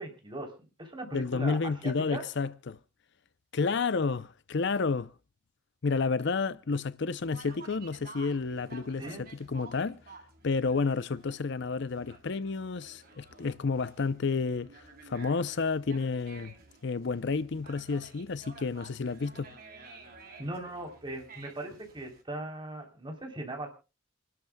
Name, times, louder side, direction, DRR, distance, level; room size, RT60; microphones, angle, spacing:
voice 1, 0.0-2.2 9.0-9.2 20.4-23.7, right 1 dB, 25° right, 3.5 m, -39 dB
voice 2, 1.1-2.8 3.5-5.1 5.8-10.0 10.4-16.5 16.8-19.5, left 4 dB, 60° left, 0.6 m, -30 dB
Conversation, 7.2-22.2, right 3 dB, 50° right, 3.7 m, -52 dB
27.5 x 12.0 x 2.3 m
head